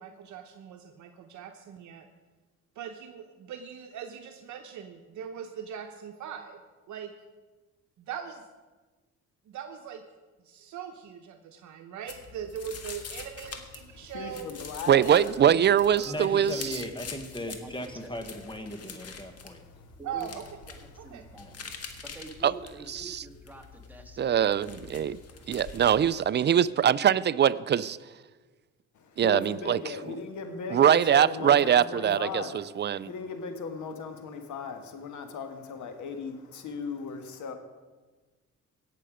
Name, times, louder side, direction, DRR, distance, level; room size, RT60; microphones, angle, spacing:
voice 1, 0.0-2.1 2.8-6.6 6.9-7.1 8.0-8.4 9.5-10.0 10.4-14.5 15.0-15.2 15.5-15.6 15.9-16.1 20.0-20.4 21.0-21.2, right 8 dB, 70° right, 5 dB, 0.9 m, -40 dB
sound 1, 12.1-26.2, left 5 dB, 55° left, 1.5 m, -45 dB
voice 2, 13.9-15.1 19.3-19.9 21.2-21.3 24.7-25.6 28.9-37.5, left 5 dB, 75° left, 6 dB, 1.5 m, -38 dB
voice 3, 14.9-16.7 22.4-22.5 23.0-23.2 24.2-25.2 25.5-28.0 29.2-30.0 30.7-33.1, right 9 dB, 35° right, 17 dB, 0.4 m, -23 dB
voice 4, 16.0-19.6 20.3-20.4 21.3-21.5, equal, 15° left, 7 dB, 1.4 m, -38 dB
voice 5, 20.0-20.3 20.7-21.8 22.0-24.3, right 2 dB, 5° right, 2 dB, 1.8 m, -47 dB
17.0 x 6.8 x 5.0 m, 1.3 s
cardioid pair, 90°, 30 cm